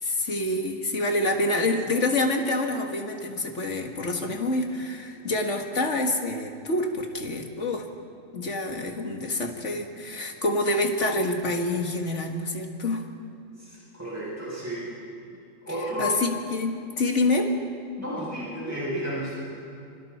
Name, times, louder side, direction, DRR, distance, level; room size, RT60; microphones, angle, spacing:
voice 1, 0.0-7.9 8.3-13.0 16.0-17.6, left 2 dB, 55° left, 3 dB, 2.1 m, -27 dB
voice 2, 13.6-14.9 15.6-16.2 18.0-19.4, equal, 10° right, -8 dB, 7.9 m, -32 dB
27.5 x 26.5 x 4.4 m, 2.4 s
omnidirectional pair, 1.5 m